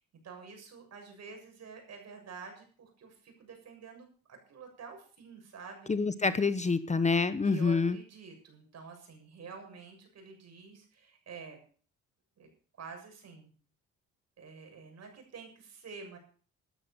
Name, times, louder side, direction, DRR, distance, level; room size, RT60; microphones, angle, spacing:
voice 1, 0.2-6.2 7.4-11.6 12.4-12.5 12.8-13.5 14.4-16.2, right 5 dB, 60° right, 3 dB, 7.0 m, -49 dB
voice 2, 5.9-8.0, left 4 dB, 25° left, 13 dB, 1.0 m, -27 dB
13.5 x 9.8 x 6.9 m, 0.42 s
cardioid pair, 90°, 30 cm